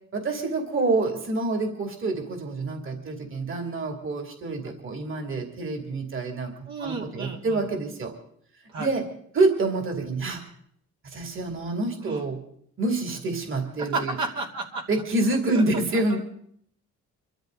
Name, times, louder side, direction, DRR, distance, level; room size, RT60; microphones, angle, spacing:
voice 1, 0.1-6.5 6.8-8.1 8.8-9.0 9.3-10.4 11.0-12.4 12.8-14.2 14.9-16.2, right 2 dB, 45° right, 4 dB, 2.8 m, -27 dB
voice 2, 6.7-7.6 8.7-8.9 12.0-12.2 13.8-14.8 15.5-15.6, right 3 dB, 70° right, -1 dB, 2.9 m, -32 dB
24.5 x 13.0 x 4.0 m, 0.65 s
cardioid pair, 90°, 30 cm